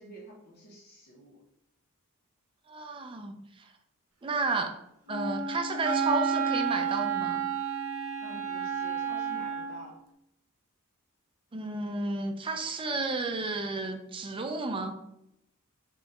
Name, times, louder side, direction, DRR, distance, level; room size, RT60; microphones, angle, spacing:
voice 1, 0.0-1.4 8.2-10.0, right 1 dB, 45° left, -3 dB, 0.8 m, -49 dB
voice 2, 2.7-3.4 4.2-4.7 5.1-7.4 11.5-15.0, right 3 dB, 25° right, 6 dB, 0.4 m, -32 dB
Wind instrument woodwind instrument, 5.1-9.9, right 6 dB, 70° right, 0.7 m, -31 dB
3.6 x 2.2 x 4.0 m, 0.80 s
head